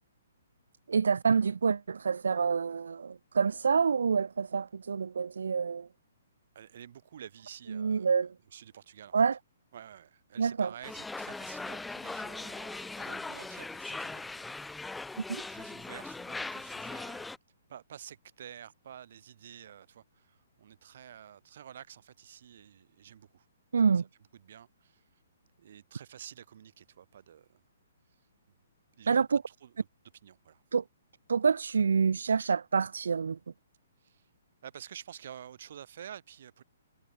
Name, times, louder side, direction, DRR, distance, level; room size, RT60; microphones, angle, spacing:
voice 1, 0.9-5.9 7.7-8.3 9.1-9.4 10.4-10.7 23.7-24.0 29.1-29.4 30.7-30.8 31.3-33.4, right 5 dB, 85° right, 0.3 m, -27 dB
voice 2, 6.5-8.2 8.5-9.1 9.7-14.8 15.3-17.3 17.7-23.5 24.3-25.0 25.6-27.6 29.0-29.9 30.2-30.6 34.0-34.3 34.6-36.6, right 9 dB, 55° right, 2.6 m, -50 dB
sound 1, 10.8-17.4, left 3 dB, 5° left, 0.4 m, -40 dB
hypercardioid pair, 155°, 0 cm